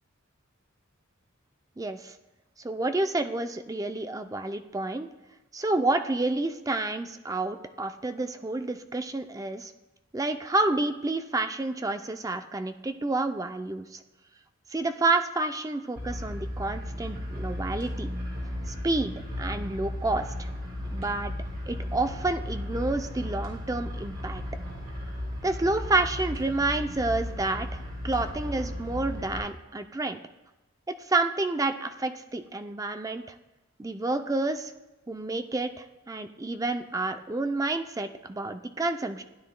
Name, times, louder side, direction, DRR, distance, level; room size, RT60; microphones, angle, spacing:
voice 1, 1.8-2.2 2.6-5.1 5.5-9.7 10.1-14.0 14.7-18.1 18.7-20.5 20.9-21.3 21.7-24.4 25.4-30.2 30.9-33.4 33.8-34.7 35.1-39.2, right 2 dB, 15° right, 8 dB, 0.4 m, -29 dB
sound 1, 16.0-29.4, left 1 dB, 85° right, 4.0 m, -35 dB
16.0 x 9.8 x 2.2 m, 1.0 s
head